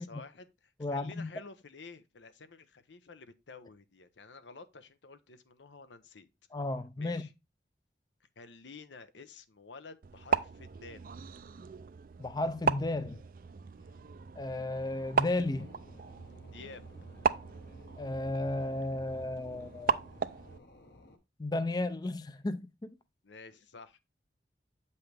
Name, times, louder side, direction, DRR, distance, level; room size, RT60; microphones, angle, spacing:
voice 1, 0.0-6.3 7.0-7.3 8.2-11.1 13.7-14.0 16.5-16.8 23.2-24.0, left 4 dB, 90° left, 0.8 m, -51 dB
voice 2, 0.8-1.3 6.5-7.3 12.2-13.2 14.4-15.7 18.0-20.0 21.4-22.9, left 2 dB, 20° left, 0.4 m, -34 dB
sound 1, 10.0-20.6, right 6 dB, 50° right, 0.4 m, -36 dB
sound 2, 14.8-21.2, left 2 dB, 65° left, 1.2 m, -57 dB
7.8 x 5.6 x 3.3 m
head